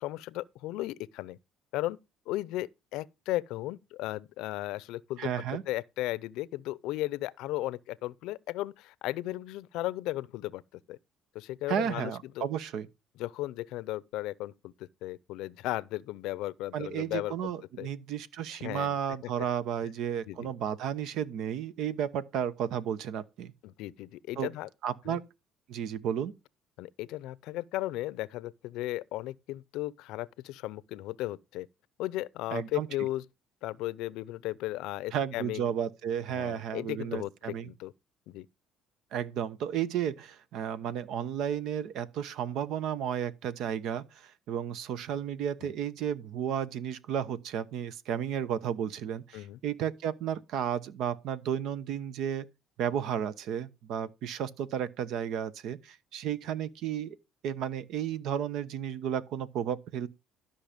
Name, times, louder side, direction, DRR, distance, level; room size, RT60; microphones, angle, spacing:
voice 1, 0.0-1.4 1.7-2.0 2.3-10.6 10.9-11.0 11.3-12.5 13.2-14.7 15.0-17.3 17.8-17.9 18.6-19.0 20.3-20.5 23.6-24.7 25.1-25.2 26.8-31.7 32.0-33.2 33.6-35.7 36.3-37.9 38.3-38.5 45.6-45.7 49.3-49.6, left 16 dB, 80° left, 0.6 m, -35 dB
voice 2, 5.2-5.6 11.7-12.9 16.7-23.5 24.4-24.5 24.8-25.2 25.7-26.3 32.5-32.9 35.1-37.7 39.1-52.5 52.8-57.2 57.4-60.1, right 9 dB, 70° right, 0.9 m, -33 dB
13.0 x 5.7 x 5.1 m
cardioid pair, 100°, 0 cm